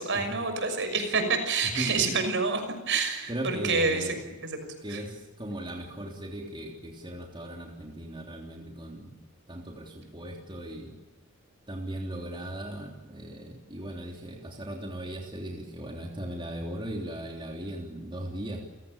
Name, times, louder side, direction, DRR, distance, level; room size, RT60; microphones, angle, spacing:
voice 1, 0.0-4.1 4.4-5.0, right 4 dB, 60° right, 7 dB, 6.2 m, -28 dB
voice 2, 1.7-2.2 3.3-4.2 4.8-9.1 9.5-10.9 11.7-18.6, right 1 dB, 25° right, 0 dB, 3.3 m, -38 dB
30.0 x 17.5 x 8.8 m, 1.2 s
head